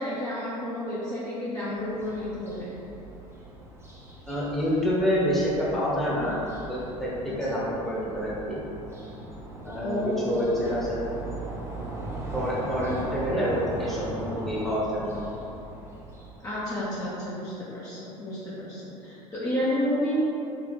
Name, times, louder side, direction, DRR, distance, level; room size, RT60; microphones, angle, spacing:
voice 1, 0.0-2.7 7.3-7.4 9.8-10.3 16.4-20.1, left 1 dB, 20° left, -10 dB, 1.0 m, -31 dB
sound 1, 1.8-16.8, right 1 dB, 15° right, 0.9 m, -39 dB
voice 2, 4.3-6.4 6.7-8.6 9.6-10.0 10.2-11.0 12.3-15.1, equal, ahead, -8 dB, 1.3 m, -27 dB
3.2 x 3.2 x 4.2 m, 2.8 s
figure-of-eight pair, 70°, 18 cm